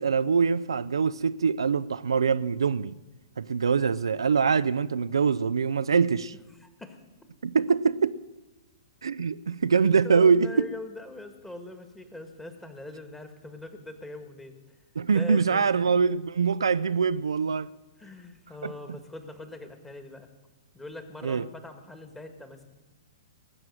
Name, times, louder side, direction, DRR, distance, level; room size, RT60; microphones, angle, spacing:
voice 1, 0.0-3.0 3.4-6.3 7.4-8.2 9.0-10.5 15.0-17.7 18.6-18.7 21.2-21.5, right 5 dB, 70° right, 0.4 m, -24 dB
voice 2, 6.6-7.0 10.0-14.8 15.1-15.7 18.0-20.3 20.7-22.6, left 2 dB, 5° left, 1.7 m, -42 dB
19.5 x 7.5 x 9.1 m
figure-of-eight pair, 110°, 3 cm